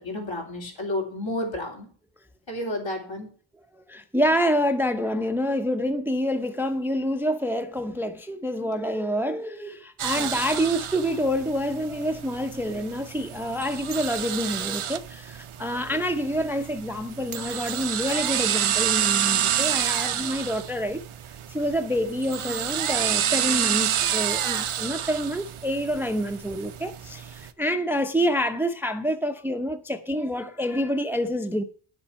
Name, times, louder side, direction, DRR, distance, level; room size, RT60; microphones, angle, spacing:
voice 1, 0.0-1.9 2.5-3.3 10.1-10.3 15.7-15.9, left 1 dB, 65° left, 3.4 m, -31 dB
voice 2, 3.9-21.0 21.5-31.6, equal, 5° right, 0.6 m, -27 dB
sound 1, 10.0-27.5, right 10 dB, 80° right, 0.8 m, -29 dB
9.6 x 7.2 x 5.7 m
wide cardioid pair, 140°, 49 cm